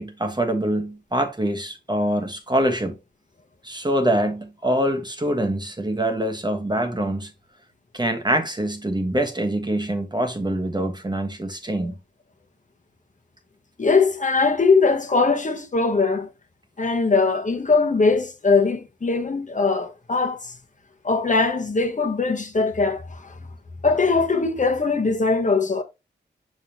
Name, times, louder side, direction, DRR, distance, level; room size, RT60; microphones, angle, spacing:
voice 1, 0.0-2.9 3.6-7.3 7.9-11.9, right 1 dB, 25° right, 1.2 m, -24 dB
voice 2, 13.8-16.3 16.8-20.5 21.0-23.4 23.8-25.8, left 4 dB, 40° left, 1.1 m, -21 dB
6.3 x 5.3 x 2.8 m
wide cardioid pair, 70°, 19 cm